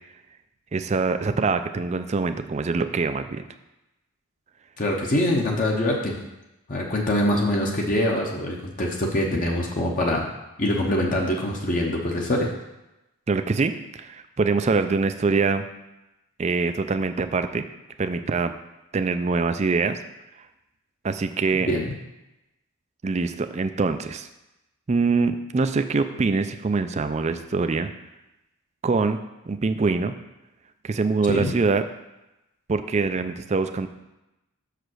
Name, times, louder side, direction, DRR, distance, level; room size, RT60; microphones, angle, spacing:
voice 1, 0.7-3.5 13.3-15.6 16.4-17.6 18.0-18.5 18.9-20.0 21.0-21.7 23.0-24.3 24.9-27.9 28.8-29.2 29.5-30.1 30.8-31.8 32.7-33.9, right 4 dB, 30° right, 9 dB, 0.4 m, -24 dB
voice 2, 4.8-6.2 6.7-10.3 10.6-12.5 21.5-21.8 31.3-31.5, left 1 dB, 35° left, -1 dB, 0.8 m, -24 dB
6.6 x 5.0 x 6.2 m, 0.95 s
head